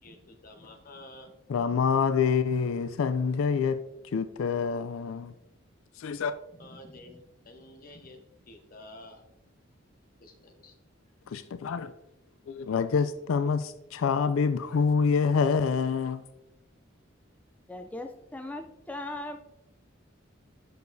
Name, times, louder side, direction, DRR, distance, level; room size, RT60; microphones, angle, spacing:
voice 1, 0.0-1.9 5.3-5.4 6.5-9.2 10.2-10.7, left 1 dB, 45° left, 5 dB, 1.0 m, -50 dB
voice 2, 1.5-3.8 4.1-5.3 6.0-6.3 11.3-11.9 12.5-16.2, left 5 dB, 85° left, 12 dB, 0.4 m, -26 dB
voice 3, 17.7-19.4, left 2 dB, 5° left, 5 dB, 0.3 m, -38 dB
8.4 x 6.6 x 2.6 m, 0.89 s
head